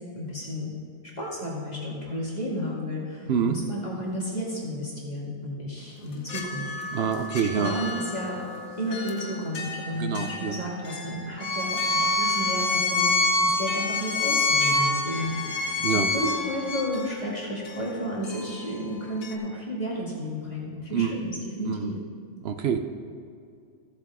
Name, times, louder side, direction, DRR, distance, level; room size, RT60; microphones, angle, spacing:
voice 1, 0.1-0.7 1.2-6.7 7.4-8.4 8.8-15.4 15.6-22.0, equal, 30° left, -5 dB, 2.3 m, -32 dB
sound 1, 5.8-19.4, left 3 dB, 85° left, 1.2 m, -40 dB
voice 2, 6.9-7.7 10.0-10.6 15.8-16.1 20.9-21.1 21.7-21.8 22.4-22.8, right 7 dB, 60° right, 7 dB, 0.7 m, -26 dB
Bowed string instrument, 11.4-16.8, left 2 dB, 60° left, 2.0 m, -25 dB
14.5 x 7.4 x 3.6 m, 2.4 s
omnidirectional pair, 1.4 m